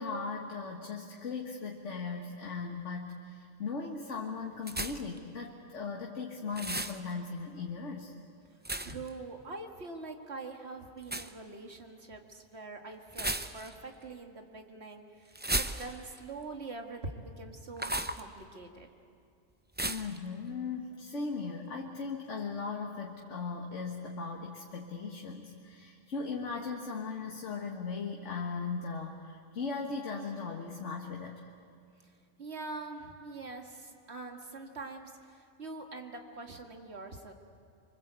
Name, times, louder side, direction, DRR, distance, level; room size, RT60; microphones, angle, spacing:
voice 1, 0.0-8.1 19.8-31.5, left 4 dB, 80° left, 1 dB, 1.8 m, -38 dB
sound 1, 4.7-5.2 6.5-7.0 8.6-9.1 11.0-11.3 13.1-13.8 15.3-16.2 17.8-18.2 19.8-20.2, right 1 dB, 10° right, 0.5 m, -34 dB
voice 2, 8.8-18.9 32.0-32.1 32.4-37.3, right 3 dB, 60° right, 3 dB, 2.2 m, -44 dB
25.5 x 24.5 x 8.2 m, 2.4 s
omnidirectional pair, 1.2 m